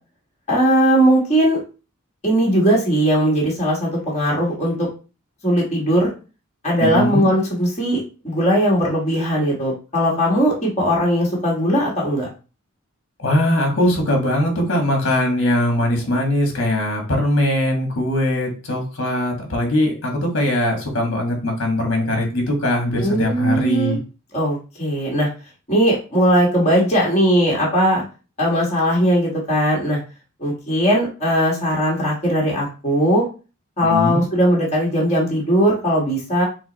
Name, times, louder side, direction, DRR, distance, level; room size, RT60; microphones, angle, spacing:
voice 1, 0.5-1.6 2.2-4.9 5.4-6.1 6.6-12.3 23.0-24.0 24.3-25.3 25.7-28.0 28.4-30.0 30.4-33.2 33.8-36.4, equal, 30° left, -3 dB, 1.4 m, -19 dB
voice 2, 6.8-7.3 13.2-24.0 33.8-34.2, left 1 dB, 55° left, 2 dB, 1.5 m, -21 dB
6.0 x 2.1 x 4.0 m, 0.34 s
head